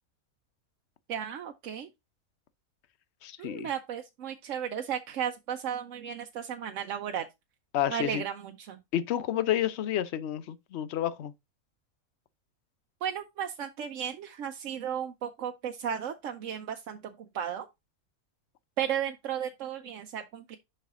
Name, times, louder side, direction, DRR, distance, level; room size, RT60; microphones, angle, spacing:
voice 1, 1.1-1.9 3.4-7.3 7.9-8.8 13.0-17.0 17.3-17.7 18.8-20.6, right 9 dB, 65° right, 1.0 m, -34 dB
voice 2, 3.2-3.7 7.7-8.2 8.9-11.3, left 11 dB, 60° left, 0.8 m, -30 dB
6.6 x 5.7 x 3.6 m
omnidirectional pair, 1.5 m